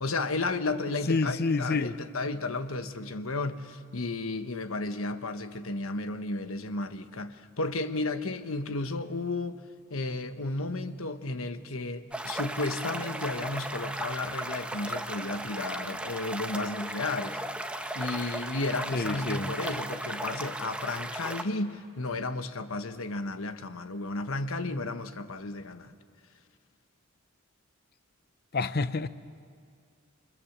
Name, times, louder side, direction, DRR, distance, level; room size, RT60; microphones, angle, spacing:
voice 1, 0.0-9.6 9.9-17.4 17.9-25.9, left 2 dB, 75° left, 1.2 m, -33 dB
voice 2, 1.1-2.0 18.9-19.5 28.5-29.1, left 3 dB, 50° left, 0.7 m, -28 dB
sound 1, 12.1-21.4, right 1 dB, 5° right, 1.0 m, -36 dB
28.5 x 25.5 x 7.3 m
head